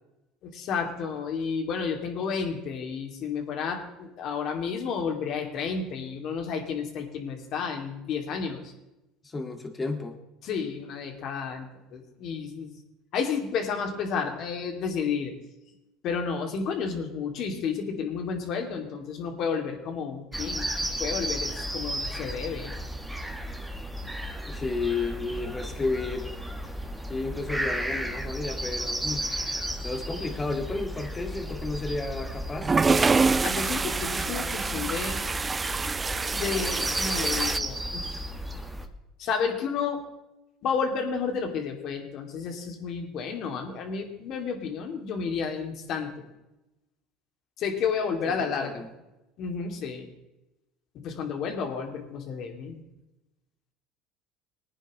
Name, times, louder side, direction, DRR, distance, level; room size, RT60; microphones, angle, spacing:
voice 1, 0.5-8.6 10.4-12.7 13.1-15.3 16.0-22.7 33.4-35.2 36.3-38.0 39.2-40.0 40.6-46.3 47.6-48.8 49.4-50.1 50.9-52.8, left 6 dB, 55° left, 3 dB, 2.7 m, -31 dB
voice 2, 9.2-10.2 24.4-26.4 27.1-29.2 29.8-32.8 48.4-48.9, left 3 dB, 20° left, 5 dB, 2.1 m, -32 dB
sound 1, 20.3-38.9, right 1 dB, 5° right, 1.6 m, -34 dB
sound 2, 32.6-37.6, right 4 dB, 20° right, 0.4 m, -26 dB
20.0 x 9.8 x 3.2 m, 0.96 s
supercardioid pair, 100°, 0 cm